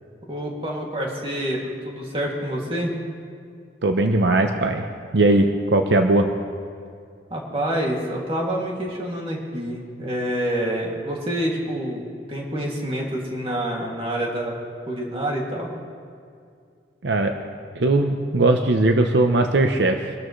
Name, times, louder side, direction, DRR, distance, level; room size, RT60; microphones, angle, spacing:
voice 1, 0.3-2.9 7.3-12.0 12.3-14.5 14.9-15.7, right 1 dB, 30° right, -2 dB, 2.4 m, -27 dB
voice 2, 3.8-4.9 5.1-6.3 17.0-17.3 17.8-20.1, right 2 dB, 75° right, 5 dB, 0.7 m, -19 dB
23.5 x 12.5 x 3.2 m, 2.2 s
head